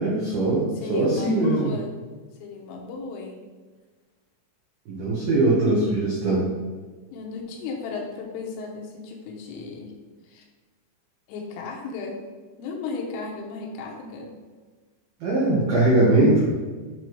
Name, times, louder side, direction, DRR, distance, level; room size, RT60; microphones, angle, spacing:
voice 1, 0.0-0.6 0.9-1.7 4.9-6.5 15.2-16.5, right 2 dB, 85° right, -6 dB, 1.8 m, -21 dB
voice 2, 0.8-1.9 2.4-3.5 7.1-9.9 10.2-10.4 11.3-12.2 12.6-14.3, left 4 dB, 85° left, 0 dB, 3.5 m, -35 dB
9.0 x 3.1 x 4.7 m, 1.4 s
omnidirectional pair, 5.7 m